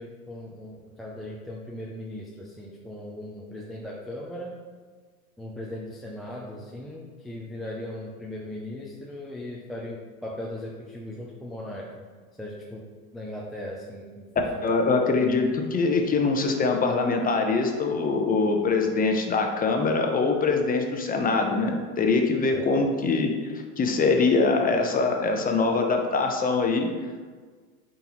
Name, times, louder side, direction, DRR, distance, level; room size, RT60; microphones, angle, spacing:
voice 1, 0.0-4.6 5.4-12.0 12.3-12.8 13.1-14.7 22.5-22.8, left 1 dB, ahead, -4 dB, 0.3 m, -38 dB
voice 2, 14.6-23.3 23.8-26.9, left 4 dB, 20° left, 3 dB, 0.8 m, -23 dB
8.7 x 3.9 x 3.0 m, 1.5 s
hypercardioid pair, 110°, 43 cm